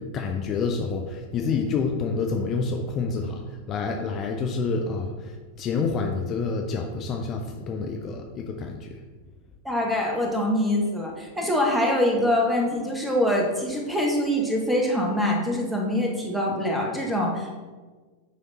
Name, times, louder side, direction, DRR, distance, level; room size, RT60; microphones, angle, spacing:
voice 1, 0.1-3.4 3.7-8.9, left 4 dB, 30° left, 2 dB, 0.6 m, -28 dB
voice 2, 9.6-17.5, left 1 dB, 5° right, 0 dB, 1.3 m, -24 dB
9.4 x 3.6 x 4.0 m, 1.4 s
figure-of-eight pair, 90°, 0 cm